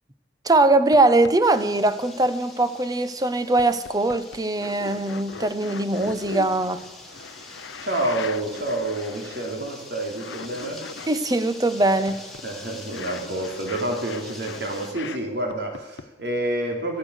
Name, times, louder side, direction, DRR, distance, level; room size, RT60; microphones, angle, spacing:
voice 1, 0.4-6.8 11.1-12.2, right 2 dB, 20° right, 0.8 m, -21 dB
sound 1, 0.9-1.0 1.2-1.3 1.8-2.3 2.9-3.0 3.6-9.8 10.1-11.2 11.8-15.2 15.5-16.1, left 5 dB, 80° left, 0.7 m, -39 dB
sound 2, 1.4-14.9, left 2 dB, ahead, 2.2 m, -44 dB
voice 2, 7.8-10.8 12.4-17.0, right 1 dB, 60° right, 3.3 m, -28 dB
14.5 x 13.0 x 6.5 m
head